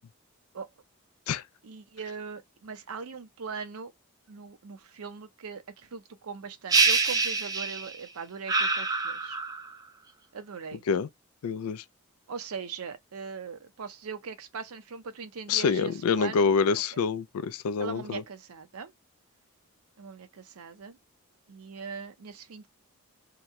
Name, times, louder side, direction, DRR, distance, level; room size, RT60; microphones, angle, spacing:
voice 1, 1.6-3.9 4.3-9.4 10.3-10.8 12.3-16.5 17.8-18.9 20.0-21.0 21.5-22.7, right 5 dB, 80° right, 0.5 m, -40 dB
sound 1, 6.7-8.0 8.5-9.7, right 4 dB, 15° right, 0.3 m, -25 dB
voice 2, 11.4-11.8 15.5-18.2, left 5 dB, 80° left, 0.4 m, -26 dB
2.9 x 2.1 x 3.5 m
head